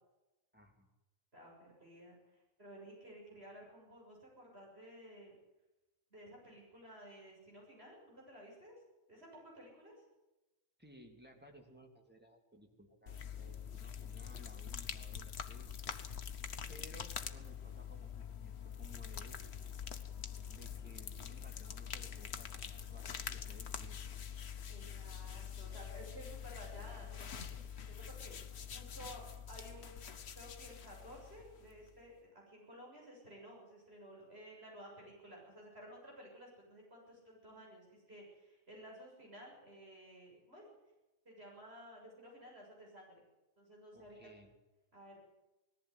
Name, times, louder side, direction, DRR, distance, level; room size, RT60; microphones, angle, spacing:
voice 1, 0.5-0.9 10.8-15.7 16.7-19.5 20.5-24.2 43.9-44.5, equal, 10° right, 1 dB, 3.1 m, -59 dB
voice 2, 1.3-5.4 6.1-8.8 9.1-10.0 16.6-16.7 24.7-27.6 27.9-30.1 30.4-40.7 41.3-43.2 43.6-44.2 44.9-45.3, equal, 55° right, -3 dB, 7.4 m, -54 dB
sound 1, 13.1-32.0, left 8 dB, 60° left, 1.3 m, -45 dB
20.0 x 14.5 x 9.7 m, 1.0 s
omnidirectional pair, 1.3 m